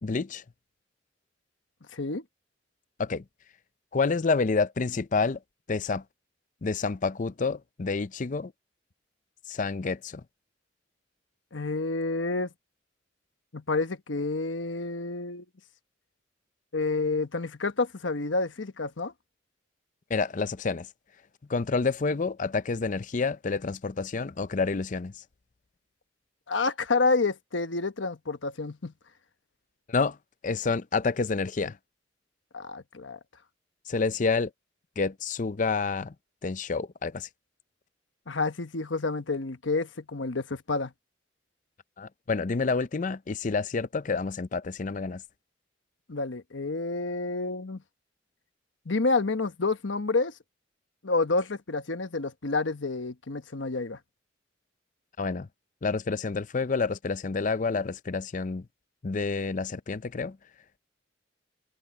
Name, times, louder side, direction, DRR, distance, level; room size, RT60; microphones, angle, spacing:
voice 1, 0.0-0.4 3.0-3.2 3.9-5.4 5.7-6.0 6.6-8.5 9.5-10.2 20.1-20.9 21.5-25.1 29.9-30.2 30.4-31.8 33.9-34.5 35.0-36.1 36.4-37.3 42.0-45.2 55.2-55.5 55.8-58.6 59.0-60.4, left 4 dB, 40° left, 0.5 m, -28 dB
voice 2, 1.9-2.2 11.5-12.5 13.5-15.4 16.7-19.1 26.5-28.9 32.5-33.2 38.3-40.9 46.1-47.8 48.8-50.3 51.0-54.0, left 3 dB, 85° left, 1.2 m, -29 dB
head